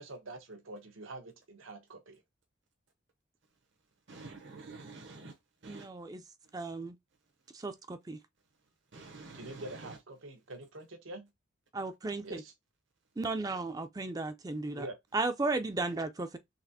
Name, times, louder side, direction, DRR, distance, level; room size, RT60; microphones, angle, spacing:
voice 1, 0.0-2.2 9.3-11.3 12.2-12.5 14.8-15.0, right 2 dB, 90° right, 0.9 m, -45 dB
voice 2, 4.1-5.3 5.6-5.9 8.9-10.0, right 3 dB, 65° right, 0.8 m, -48 dB
voice 3, 5.7-6.2 6.5-7.0 7.5-8.2 11.7-12.4 13.2-14.9 15.1-16.4, right 3 dB, 20° right, 0.3 m, -35 dB
4.0 x 3.3 x 2.7 m
head